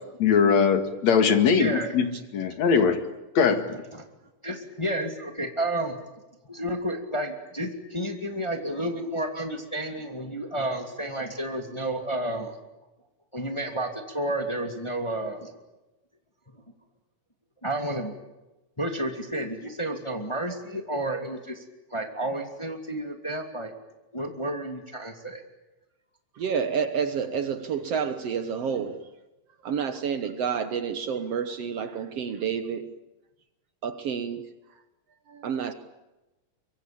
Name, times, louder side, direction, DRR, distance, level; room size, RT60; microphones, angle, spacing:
voice 1, 0.2-2.1 2.3-3.0 3.3-3.6, left 6 dB, 60° left, 8 dB, 3.1 m, -20 dB
voice 2, 1.5-1.9 3.7-4.0 4.4-6.0 6.5-12.6 13.3-15.5 17.6-18.1 18.8-21.6 21.9-23.7 24.1-25.4, right 1 dB, 10° left, 5 dB, 1.9 m, -31 dB
voice 3, 26.4-29.0 29.6-32.9 33.8-34.5 35.3-35.7, right 7 dB, 60° right, 10 dB, 1.9 m, -29 dB
24.5 x 23.5 x 8.6 m, 1.0 s
omnidirectional pair, 3.8 m